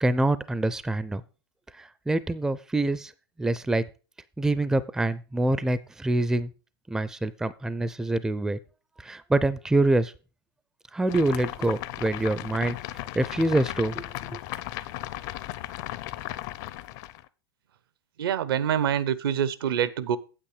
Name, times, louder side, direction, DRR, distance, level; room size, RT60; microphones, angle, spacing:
voice 1, 0.0-1.2 1.7-3.1 3.4-3.8 4.4-6.5 6.9-8.6 9.0-10.1 10.9-14.4, right 2 dB, 5° right, 0.5 m, -26 dB
sound 1, 11.1-17.2, left 15 dB, 45° left, 0.7 m, -36 dB
voice 2, 18.2-20.2, right 9 dB, 65° right, 0.9 m, -25 dB
9.0 x 8.2 x 4.9 m
hypercardioid pair, 100°, 13 cm